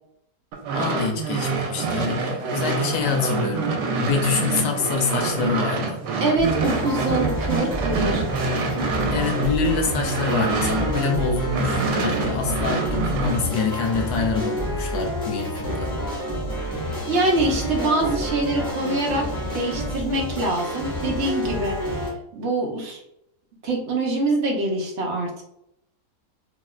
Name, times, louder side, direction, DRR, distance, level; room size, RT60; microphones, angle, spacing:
sound 1, 0.5-11.2 11.5-13.4, right 4 dB, 85° right, 1.2 m, -26 dB
voice 1, 0.7-6.0 9.1-15.9, left 5 dB, 75° left, 3 dB, 1.0 m, -26 dB
voice 2, 6.2-8.2 16.7-23.0 23.6-25.3, right 2 dB, 60° right, -1 dB, 0.8 m, -25 dB
sound 2, 6.4-22.1, equal, 5° left, 1.0 m, -29 dB
3.1 x 2.9 x 2.3 m, 0.78 s
omnidirectional pair, 1.8 m